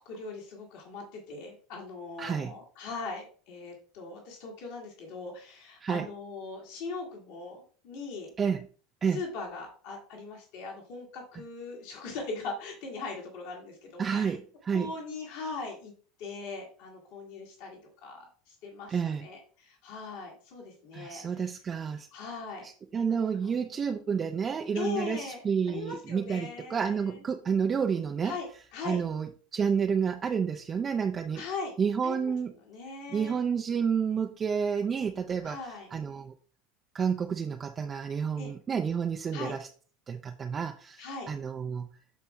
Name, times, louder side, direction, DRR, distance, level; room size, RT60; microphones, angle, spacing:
voice 1, 0.0-8.3 9.1-14.4 14.7-15.9 16.2-21.2 22.1-22.7 23.1-23.2 24.8-25.4 25.7-27.2 28.2-29.0 31.3-31.7 32.0-32.3 32.7-33.4 35.4-35.9 38.4-38.5 39.3-39.5 41.0-41.3, left 4 dB, 55° left, -1 dB, 2.0 m, -40 dB
voice 2, 2.2-2.5 5.8-6.1 8.4-8.7 9.0-9.2 14.0-14.9 18.9-19.3 20.9-22.1 22.6-28.3 28.8-31.4 31.8-32.5 33.1-36.3 36.9-39.6 40.1-41.9, right 6 dB, 25° right, 4 dB, 0.5 m, -30 dB
13.5 x 4.5 x 2.3 m, 0.42 s
figure-of-eight pair, 75°, 0 cm